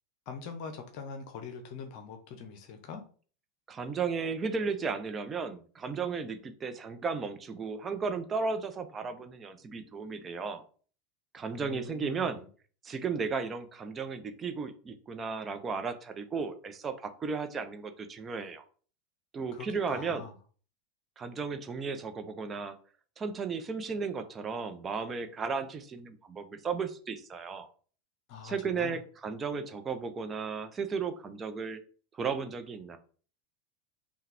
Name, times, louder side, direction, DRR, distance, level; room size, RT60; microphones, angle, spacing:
voice 1, 0.3-3.0 11.5-12.5 19.5-20.3 28.3-29.0, left 5 dB, 50° left, 7 dB, 0.7 m, -43 dB
voice 2, 3.7-10.6 11.3-12.4 12.8-18.6 19.3-20.2 21.2-22.7 23.2-27.7 28.4-31.8 32.1-33.0, right 5 dB, 25° right, 8 dB, 0.7 m, -34 dB
5.5 x 2.3 x 3.4 m, 0.41 s
figure-of-eight pair, 85°, 0 cm